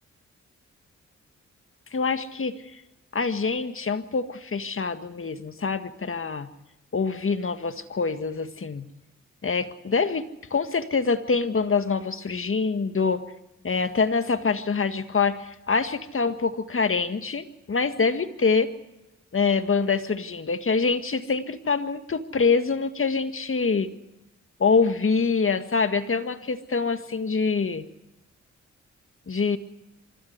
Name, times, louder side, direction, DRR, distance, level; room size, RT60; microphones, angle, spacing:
voice 1, 1.9-2.6 3.1-6.5 6.9-8.9 9.4-13.2 13.6-18.7 19.3-23.9 24.6-27.8 29.3-29.6, left 4 dB, 45° left, 9 dB, 1.8 m, -25 dB
25.0 x 13.5 x 9.5 m, 0.92 s
cardioid pair, 55°, 30 cm